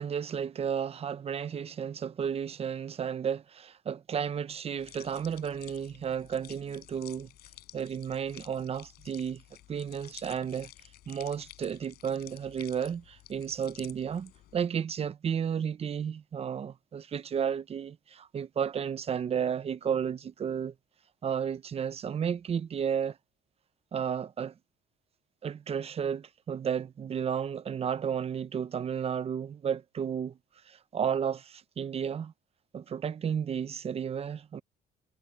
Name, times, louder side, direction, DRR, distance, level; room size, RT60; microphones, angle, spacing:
voice 1, 0.0-7.3 7.7-9.4 9.7-10.7 11.1-20.7 21.2-23.2 23.9-24.5 25.4-30.4 30.7-32.3 32.7-34.6, right 7 dB, 35° right, 0.7 m, -33 dB
sound 1, 4.8-14.7, left 14 dB, 70° left, 7.5 m, -52 dB
cardioid pair, 110°, 17 cm